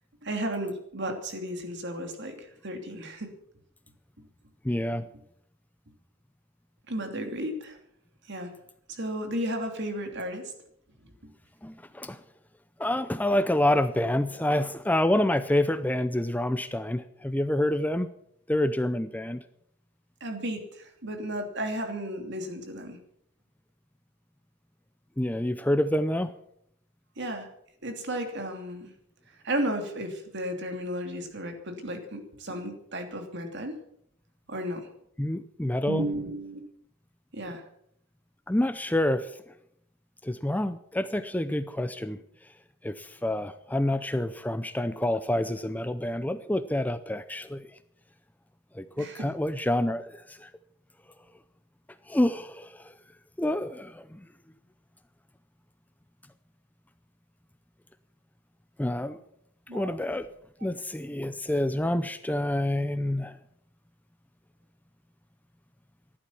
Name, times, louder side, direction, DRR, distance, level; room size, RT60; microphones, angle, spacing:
voice 1, 0.2-3.4 6.9-7.8 8.3-8.5 8.9-10.5 20.2-23.0 27.2-27.5 27.8-28.9 29.4-33.8 34.5-34.9 35.9-36.6 37.3-37.6 49.0-49.3 59.7-59.9, right 1 dB, 55° right, 5 dB, 2.8 m, -34 dB
voice 2, 4.6-5.1 11.6-12.2 12.8-18.1 18.5-19.4 25.2-26.3 35.2-36.1 38.5-39.3 40.2-42.2 42.8-47.7 48.7-50.5 52.1-53.0 53.4-54.2 58.8-59.2 59.7-60.3 60.6-63.4, left 1 dB, 10° left, 11 dB, 0.5 m, -27 dB
14.5 x 11.5 x 7.2 m, 0.72 s
head